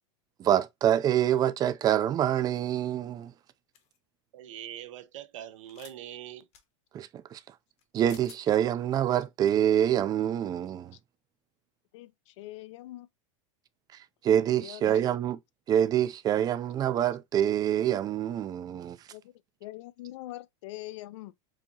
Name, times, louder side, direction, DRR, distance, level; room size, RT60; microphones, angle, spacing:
voice 1, 0.4-3.3 6.9-7.4 7.9-10.9 13.9-15.4 15.7-19.0, right 10 dB, 25° right, 0.4 m, -26 dB
sound 1, 3.7-4.0 5.6-6.0 6.5-6.6 7.8-7.9 8.1-8.4, left 8 dB, 40° left, 1.0 m, -51 dB
voice 2, 4.3-6.5, right 11 dB, 85° right, 0.7 m, -42 dB
voice 3, 11.9-13.1 14.6-15.0 19.1-19.3 19.6-21.3, left 16 dB, 70° left, 0.5 m, -43 dB
4.7 x 2.8 x 2.7 m
supercardioid pair, 135°, 16 cm